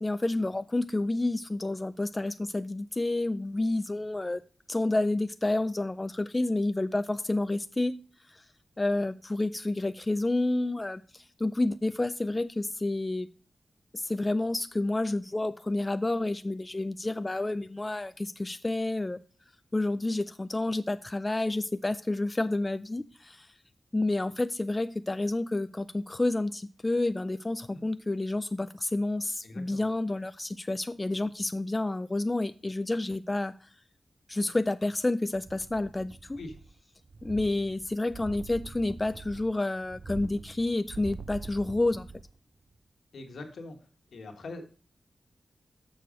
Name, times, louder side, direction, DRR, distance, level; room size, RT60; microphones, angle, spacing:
voice 1, 0.0-4.4 4.7-8.0 8.3-8.4 8.8-13.3 13.9-19.2 19.7-23.5 23.9-33.7 34.3-36.4 37.2-42.1, left 2 dB, 25° left, 11 dB, 0.4 m, -29 dB
voice 2, 29.4-29.9 36.4-36.5 43.1-43.8 44.1-44.8, left 2 dB, 85° left, 4 dB, 1.4 m, -43 dB
sound 1, 35.3-36.8 37.1-42.4 42.7-42.8, right 4 dB, 50° right, 0.5 m, -44 dB
6.6 x 6.3 x 5.0 m, 0.40 s
cardioid pair, 70°, 0 cm